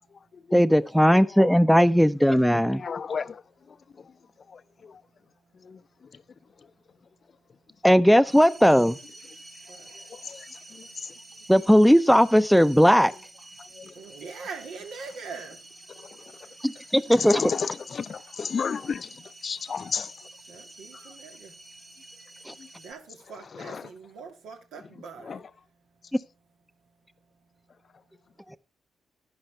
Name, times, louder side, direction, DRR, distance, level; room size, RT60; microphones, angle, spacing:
voice 1, 0.0-0.5 3.7-7.9 9.3-11.5 13.6-16.2 20.5-26.2 26.8-28.6, right 5 dB, 75° right, 2.0 m, -47 dB
voice 2, 0.5-2.8 7.8-9.0 11.5-13.1 16.6-17.4 22.5-22.6, equal, ahead, 0.6 m, -18 dB
voice 3, 2.7-4.1 4.5-5.0 5.6-6.2 9.9-11.1 13.6-13.9 16.0-16.5 17.1-20.3 20.9-21.0 22.6-22.7 23.5-23.8 25.2-25.4, left 6 dB, 50° left, 0.5 m, -34 dB
sound 1, 8.2-22.9, right 1 dB, 25° right, 5.0 m, -49 dB
11.5 x 10.5 x 3.3 m
hypercardioid pair, 40°, 0 cm